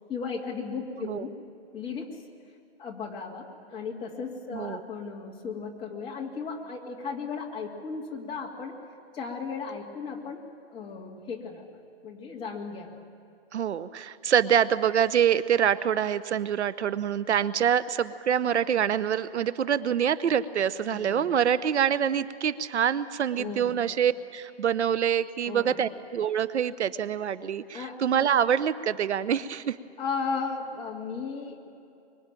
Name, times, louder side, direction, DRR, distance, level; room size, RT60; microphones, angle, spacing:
voice 1, 0.1-1.3 1.7-2.2 2.8-8.8 9.1-13.0 20.9-21.4 23.4-23.8 25.5-25.8 27.7-28.0 30.0-31.7, left 5 dB, 15° left, -2 dB, 2.3 m, -36 dB
voice 2, 13.5-29.8, right 8 dB, 80° right, 15 dB, 1.0 m, -25 dB
24.5 x 23.0 x 9.2 m, 2.4 s
hypercardioid pair, 160°, 34 cm